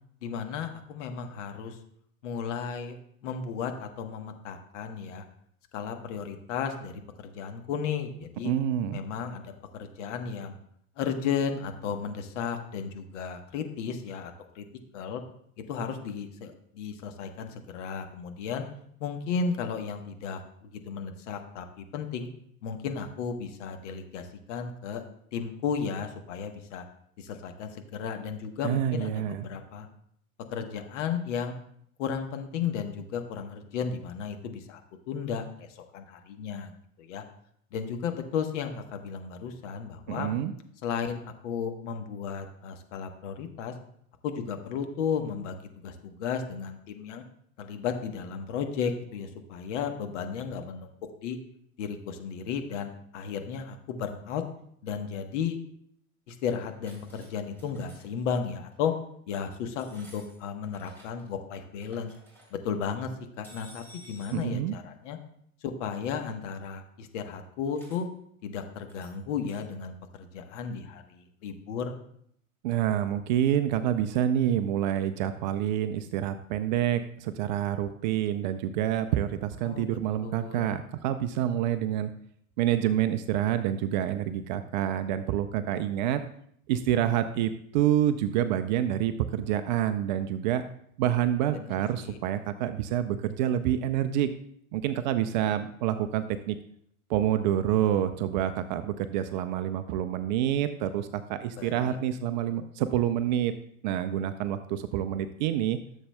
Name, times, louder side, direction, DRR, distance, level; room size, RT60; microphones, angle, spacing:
voice 1, 0.2-1.8 2.2-3.0 3.2-5.2 5.7-8.5 8.9-10.5 11.0-14.6 14.9-15.2 15.7-18.6 19.0-22.3 22.6-25.0 25.3-26.8 27.2-29.9 30.5-31.5 32.0-34.8 35.1-35.7 35.9-37.2 37.7-40.3 40.8-43.7 44.2-47.2 47.6-50.9 51.2-51.4 51.8-54.4 54.8-55.6 56.3-58.9 59.3-62.1 62.5-63.1 63.4-65.2 65.6-68.1 68.4-71.9 79.6-80.7 91.5-92.2 101.5-102.0, left 6 dB, 55° left, 6 dB, 1.2 m, -34 dB
voice 2, 8.4-9.0 28.6-29.5 40.1-40.5 64.3-64.7 72.6-82.1 82.6-86.2 86.7-90.6 91.0-94.3 94.7-96.6 97.1-103.5 103.8-105.8, right 11 dB, 35° right, 10 dB, 0.4 m, -27 dB
sound 1, 56.6-57.3 57.5-58.2 58.7-58.9 59.7-61.3 61.5-62.5 63.4-64.4 67.8-68.0 68.9-69.1 69.4-69.7, equal, 5° left, 3.8 m, -54 dB
14.0 x 7.1 x 2.2 m, 0.68 s
hypercardioid pair, 100°, 44 cm